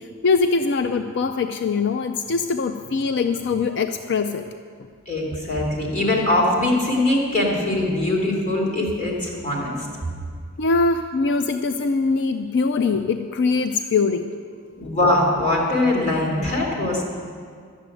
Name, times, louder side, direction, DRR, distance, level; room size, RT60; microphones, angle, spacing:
voice 1, 0.0-4.4 10.6-14.3, left 4 dB, 55° left, 8 dB, 0.5 m, -22 dB
voice 2, 5.1-9.8 14.8-17.0, left 1 dB, 35° left, -4 dB, 2.7 m, -22 dB
12.0 x 7.6 x 9.2 m, 2.1 s
head